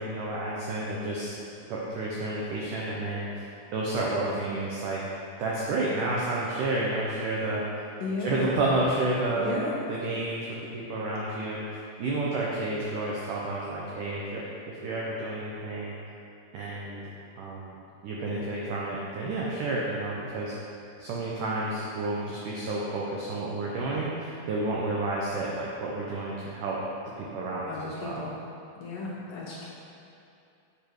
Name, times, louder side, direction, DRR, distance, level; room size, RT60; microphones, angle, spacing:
voice 1, 0.0-1.4 1.7-5.0 5.4-7.6 8.2-9.6 9.9-14.4 14.7-15.9 16.5-17.0 17.4-17.8 18.0-20.5 21.0-26.8 27.2-28.3, right 2 dB, 85° right, -4 dB, 1.8 m, -30 dB
voice 2, 8.0-8.6 9.4-9.7 27.7-28.3 28.8-29.7, left 3 dB, 75° left, -5 dB, 2.0 m, -34 dB
7.9 x 6.9 x 4.6 m, 2.6 s
omnidirectional pair, 4.8 m